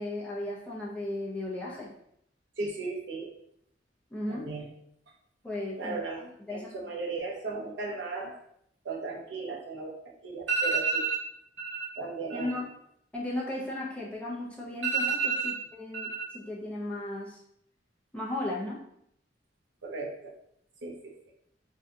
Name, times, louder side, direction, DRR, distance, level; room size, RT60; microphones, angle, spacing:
voice 1, 0.0-1.9 4.1-4.5 5.4-6.7 12.3-12.7 13.1-17.4 18.1-18.8, left 1 dB, 5° left, -5 dB, 0.6 m, -36 dB
voice 2, 2.6-3.3 4.3-4.6 5.8-6.2 6.5-8.3 8.8-9.9 10.2-11.3 11.6-12.6 14.8-15.6 15.9-16.4 19.8-20.3 20.8-21.1, right 4 dB, 80° right, -1 dB, 0.7 m, -33 dB
2.7 x 2.3 x 3.8 m, 0.73 s
head